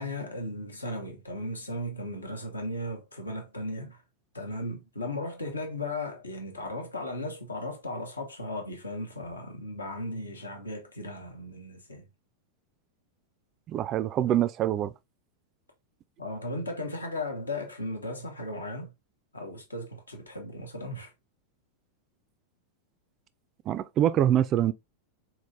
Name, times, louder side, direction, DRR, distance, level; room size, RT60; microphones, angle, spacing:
voice 1, 0.0-4.0 4.3-12.1 16.2-18.9 19.3-21.1, left 1 dB, 80° left, 1.0 m, -36 dB
voice 2, 13.7-14.9 23.7-24.7, right 11 dB, 35° right, 0.3 m, -25 dB
4.2 x 3.1 x 2.5 m
figure-of-eight pair, 90°, 0 cm